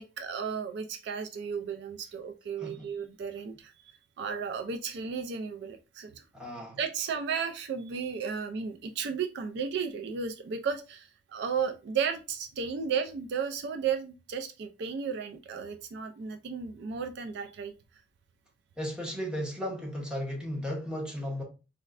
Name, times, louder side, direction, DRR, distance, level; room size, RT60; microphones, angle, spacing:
voice 1, 0.0-3.7 4.2-6.2 6.8-17.7, right 6 dB, 60° right, 0.3 m, -34 dB
voice 2, 6.3-6.8 18.8-21.4, equal, 5° right, 0.7 m, -35 dB
4.2 x 2.1 x 2.4 m
head